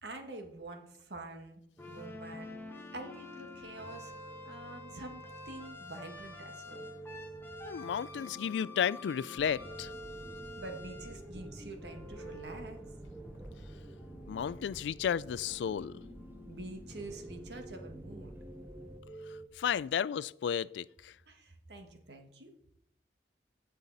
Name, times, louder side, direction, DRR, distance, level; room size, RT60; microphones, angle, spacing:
voice 1, 0.0-1.6 1.9-2.5 2.9-4.1 4.4-6.9 10.6-12.8 16.5-18.3 21.3-22.5, right 2 dB, 70° right, 1.5 m, -46 dB
sound 1, 1.8-19.5, left 1 dB, 15° left, 1.0 m, -48 dB
voice 2, 7.6-9.9 14.3-16.0 19.6-21.1, left 8 dB, 80° left, 0.3 m, -33 dB
sound 2, 9.4-19.0, right 1 dB, 10° right, 0.6 m, -50 dB
16.0 x 5.6 x 4.1 m
head